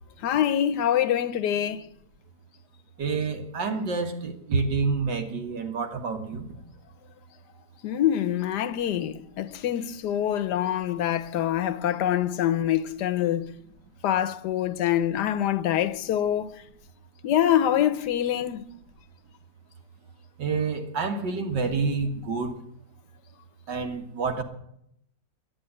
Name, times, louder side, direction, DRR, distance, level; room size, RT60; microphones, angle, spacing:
voice 1, 0.2-1.9 7.8-13.5 14.0-16.6 17.2-18.6, left 11 dB, 75° left, 1.3 m, -25 dB
voice 2, 3.0-6.5 20.4-22.6 23.7-24.4, right 4 dB, 90° right, 2.3 m, -28 dB
11.0 x 9.8 x 9.8 m
omnidirectional pair, 1.9 m